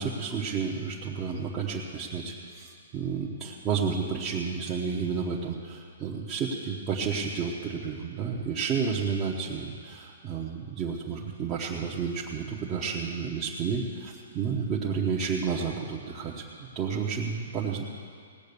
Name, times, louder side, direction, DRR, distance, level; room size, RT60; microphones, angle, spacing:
voice 1, 0.0-17.8, right 6 dB, 20° right, -4 dB, 1.0 m, -31 dB
18.0 x 7.8 x 6.9 m, 2.3 s
hypercardioid pair, 160°, 0 cm